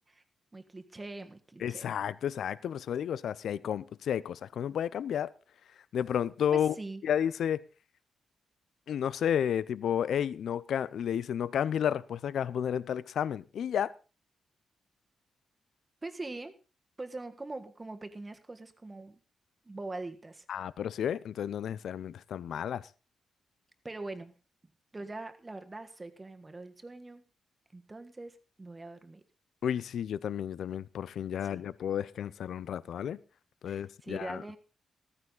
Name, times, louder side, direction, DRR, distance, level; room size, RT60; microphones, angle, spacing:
voice 1, 0.5-1.9 6.5-7.0 16.0-16.5 17.0-19.2 19.6-20.4 23.8-24.3 24.9-27.2 27.7-29.2 31.4-31.6 33.7-34.6, right 2 dB, 20° right, 1.5 m, -43 dB
voice 2, 1.6-5.3 5.9-6.7 7.0-7.6 8.9-13.9 20.5-22.8 29.6-33.2 33.6-34.4, left 9 dB, 80° left, 0.6 m, -32 dB
15.0 x 14.5 x 3.9 m
wide cardioid pair, 140°, 0 cm